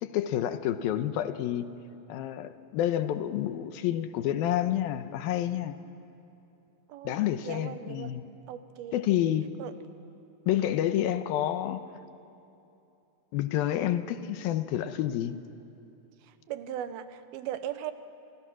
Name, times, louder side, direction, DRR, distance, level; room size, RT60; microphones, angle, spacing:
voice 1, 0.0-1.7 2.1-5.8 7.0-8.3 8.9-9.5 10.5-11.9 13.3-15.4, left 11 dB, 90° left, 10 dB, 2.7 m, -29 dB
voice 2, 6.9-8.1 8.5-8.9 9.2-9.3 9.6-9.7 16.2-17.9, right 10 dB, 90° right, 11 dB, 2.9 m, -38 dB
29.0 x 28.5 x 6.2 m, 2.8 s
omnidirectional pair, 4.2 m